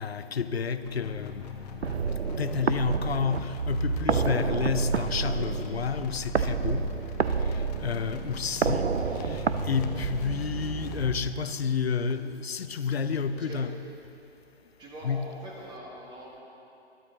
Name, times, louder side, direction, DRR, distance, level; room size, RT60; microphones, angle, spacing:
voice 1, 0.0-1.4 2.4-6.9 7.4-13.7 15.0-15.2, left 6 dB, 65° left, 12 dB, 0.8 m, -30 dB
sound 1, 0.8-11.3, equal, 40° left, 1.3 m, -40 dB
sound 2, 1.8-10.8, right 5 dB, 80° right, 0.6 m, -29 dB
sound 3, 4.9-5.2 5.5-5.8 6.1-6.4 6.7-7.0 7.3-7.6 7.9-8.3 8.5-8.8 9.1-9.5 9.7-10.7 10.9-11.2 11.5-11.8 12.1-12.2, left 8 dB, 20° left, 0.5 m, -52 dB
voice 2, 13.1-13.7 14.8-16.4, right 1 dB, 15° right, -2 dB, 1.4 m, -44 dB
21.5 x 12.0 x 3.9 m, 2.8 s
figure-of-eight pair, 125°, 33 cm